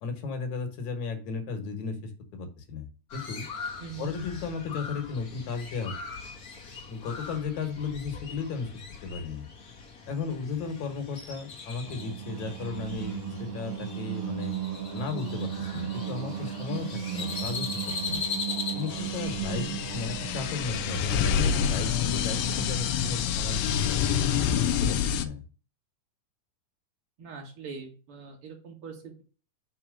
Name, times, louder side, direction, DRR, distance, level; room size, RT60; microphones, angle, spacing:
voice 1, 0.0-2.9 3.1-3.5 4.0-5.9 6.9-9.5 10.1-14.5 14.9-18.2 18.7-19.7 19.9-23.9 24.3-25.4, left 5 dB, 70° left, 7 dB, 2.5 m, -35 dB
Crow, 3.1-19.7, left 5 dB, 45° left, 1.2 m, -40 dB
voice 2, 3.8-4.1 19.3-19.9 27.2-29.2, right 3 dB, 45° right, 0 dB, 2.7 m, -41 dB
Singing, 11.9-23.0, right 11 dB, 75° right, 2.1 m, -36 dB
sound 1, 18.9-25.2, left 8 dB, 85° left, 1.4 m, -27 dB
5.8 x 4.3 x 6.2 m, 0.37 s
omnidirectional pair, 3.7 m